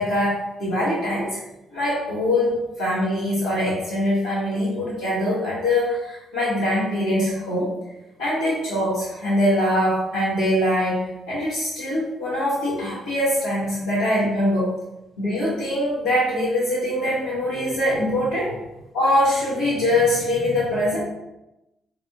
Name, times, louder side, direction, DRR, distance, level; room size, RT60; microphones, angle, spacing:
voice 1, 0.0-1.4 1.7-7.7 8.2-11.0 11.3-14.7 15.2-18.5 18.9-21.0, left 1 dB, 80° left, -12 dB, 1.0 m, -23 dB
4.3 x 3.3 x 2.5 m, 0.95 s
figure-of-eight pair, 40°, 0 cm